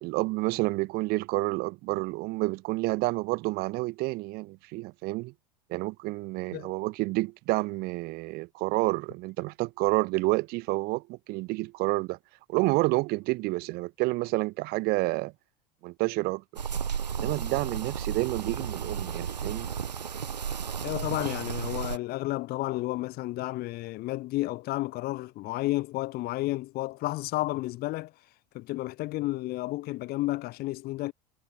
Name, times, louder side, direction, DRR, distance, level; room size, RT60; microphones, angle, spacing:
voice 1, 0.0-5.3 5.7-12.2 12.5-15.3 15.8-16.4 17.1-19.7, right 22 dB, 50° right, 0.9 m, -29 dB
sound 1, 16.6-22.0, right 7 dB, 90° right, 1.0 m, -33 dB
voice 2, 20.8-28.1 28.5-31.1, left 18 dB, 50° left, 1.7 m, -31 dB
hypercardioid pair, 80°, 21 cm